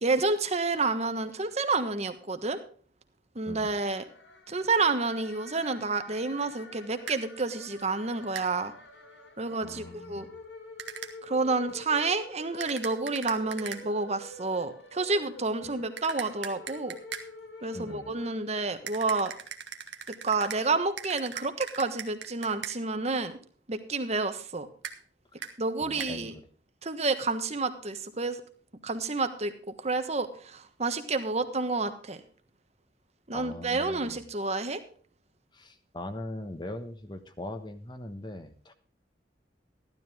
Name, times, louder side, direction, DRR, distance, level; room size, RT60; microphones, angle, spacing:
voice 1, 0.0-2.6 3.3-4.0 4.5-8.7 9.4-10.3 11.2-17.0 17.6-19.3 20.2-23.3 23.7-24.7 25.6-26.3 26.8-28.4 28.8-29.5 29.8-32.2 33.3-34.8, right 3 dB, 35° right, 9 dB, 1.3 m, -29 dB
sound 1, 3.7-19.0, left 1 dB, 85° left, 2.1 m, -48 dB
sound 2, 7.1-7.2 8.3-8.5 10.8-11.1 12.6-13.8 16.0-17.3 18.9-20.6 21.0-22.8 24.8-25.0 25.4-25.5 26.0-26.1, right 7 dB, 80° right, 1.5 m, -39 dB
voice 2, 9.6-10.4 17.7-18.1 25.4-25.5 25.8-26.4 33.3-34.2 35.5-38.7, left 1 dB, 25° left, 8 dB, 1.3 m, -41 dB
14.5 x 12.5 x 3.5 m, 0.42 s
head